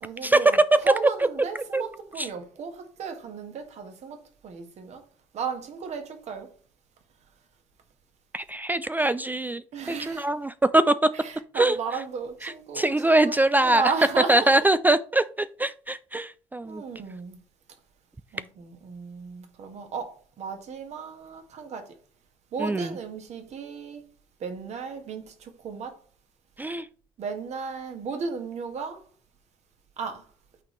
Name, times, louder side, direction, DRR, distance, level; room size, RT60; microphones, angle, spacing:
voice 1, 0.0-5.0 5.3-6.5 9.7-10.3 11.1-14.7 16.6-17.4 18.3-21.9 22.5-24.0 24.4-26.0 27.2-29.0 30.0-30.3, right 5 dB, 55° right, 1.7 m, -34 dB
voice 2, 8.3-11.1 11.5-11.8 12.4-13.8 14.3-16.8 22.6-22.9 26.6-26.9, right 2 dB, 15° right, 0.4 m, -23 dB
8.5 x 4.0 x 3.3 m
hypercardioid pair, 60°, 14 cm